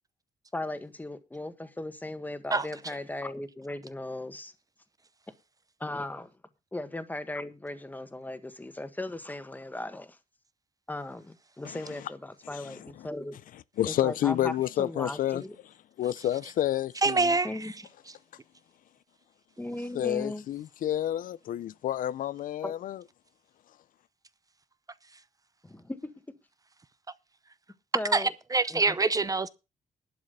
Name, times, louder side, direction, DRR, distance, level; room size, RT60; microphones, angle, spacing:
voice 1, 0.5-4.5 5.8-6.3 6.7-10.2 10.9-13.4 13.9-14.5 14.8-15.6 17.4-17.7 19.6-20.4 22.6-22.7 25.6-26.1 27.9-28.3 28.7-29.0, left 2 dB, 10° left, 1.6 m, -37 dB
voice 2, 13.8-15.4 16.0-17.3 19.9-23.0, left 12 dB, 80° left, 0.5 m, -29 dB
voice 3, 17.0-17.5 28.1-29.5, right 3 dB, 25° right, 0.7 m, -25 dB
11.5 x 7.6 x 6.7 m
cardioid pair, 110°, 14 cm